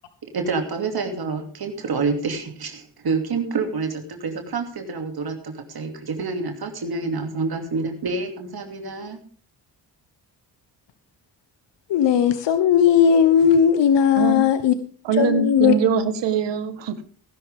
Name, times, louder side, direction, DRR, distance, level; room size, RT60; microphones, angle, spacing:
voice 1, 0.3-9.2, right 4 dB, 60° right, 4 dB, 2.8 m, -27 dB
voice 2, 11.9-14.7 15.2-15.7, left 8 dB, 75° left, 11 dB, 1.1 m, -17 dB
voice 3, 15.0-17.0, right 6 dB, 85° right, 11 dB, 1.5 m, -22 dB
17.5 x 11.0 x 3.6 m, 0.43 s
cardioid pair, 65°, 42 cm